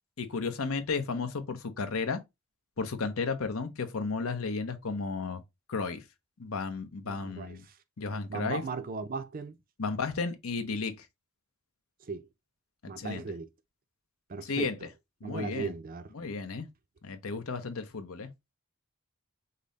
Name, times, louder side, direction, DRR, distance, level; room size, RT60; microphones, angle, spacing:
voice 1, 0.2-2.2 2.8-5.4 5.7-6.0 6.4-7.6 8.0-8.6 9.8-11.1 12.8-13.2 14.4-14.8 15.2-15.7 16.1-16.7 17.0-18.3, left 4 dB, 75° left, 0.8 m, -33 dB
voice 2, 7.1-7.8 8.3-9.6 12.0-12.3 12.9-13.5 14.3-14.7 15.2-16.1, right 4 dB, 40° right, 0.5 m, -37 dB
5.3 x 2.1 x 3.9 m
head